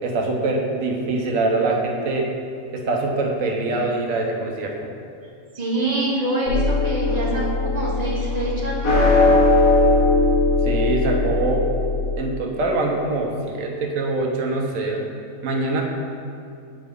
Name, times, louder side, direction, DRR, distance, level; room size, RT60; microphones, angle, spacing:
voice 1, 0.0-2.3 2.7-4.9 10.6-11.7 12.2-15.0 15.4-15.8, right 2 dB, 65° right, 1 dB, 1.1 m, -24 dB
voice 2, 5.5-9.0, right 1 dB, 35° right, -4 dB, 0.9 m, -25 dB
sound 1, 6.5-12.2, left 2 dB, 70° left, 1.3 m, -19 dB
7.5 x 3.9 x 3.6 m, 2.4 s
omnidirectional pair, 1.6 m